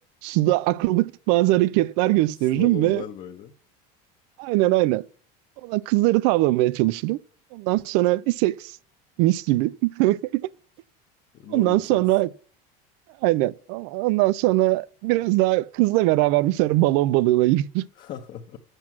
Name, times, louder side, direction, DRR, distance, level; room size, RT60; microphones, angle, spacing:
voice 1, 0.2-3.0 4.4-5.0 5.6-7.2 7.5-8.7 9.2-10.4 11.5-12.3 13.2-17.8, right 18 dB, 65° right, 0.4 m, -21 dB
voice 2, 2.4-3.5 11.3-12.0 17.8-18.6, left 10 dB, 45° left, 0.9 m, -37 dB
7.6 x 6.0 x 6.0 m
supercardioid pair, 135°, 20 cm